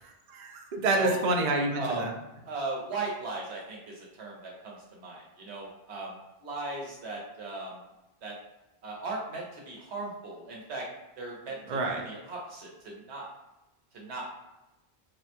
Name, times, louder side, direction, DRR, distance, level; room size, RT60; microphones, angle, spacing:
voice 1, 0.3-2.1 11.7-12.1, right 2 dB, 55° right, 2 dB, 0.5 m, -28 dB
voice 2, 1.7-2.1 2.4-7.8 8.2-8.3 8.8-10.8 11.2-11.6 11.9-13.3 13.9-14.3, right 3 dB, 85° right, -2 dB, 1.1 m, -37 dB
3.5 x 2.1 x 2.8 m, 0.97 s
omnidirectional pair, 1.1 m